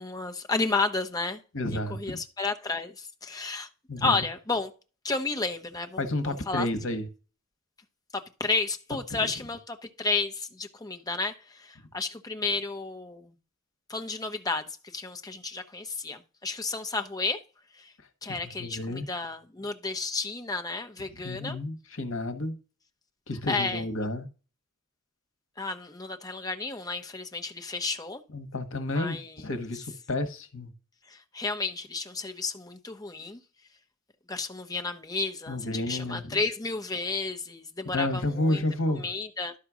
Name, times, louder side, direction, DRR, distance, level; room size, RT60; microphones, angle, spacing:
voice 1, 0.0-1.4 1.7-3.7 4.0-4.7 5.0-6.7 8.1-13.3 13.9-14.7 14.9-17.4 17.8-17.9 18.2-21.6 23.5-23.8 25.6-28.2 28.9-29.3 31.1-33.4 34.3-38.6 39.0-39.5, left 3 dB, 20° left, 1.0 m, -32 dB
voice 2, 1.5-2.2 3.9-4.2 6.0-7.1 9.1-9.3 11.8-11.9 18.0-19.1 21.1-22.6 23.3-24.3 28.3-30.7 35.5-36.4 37.8-39.1, left 2 dB, 70° left, 1.4 m, -31 dB
11.5 x 4.3 x 6.2 m
head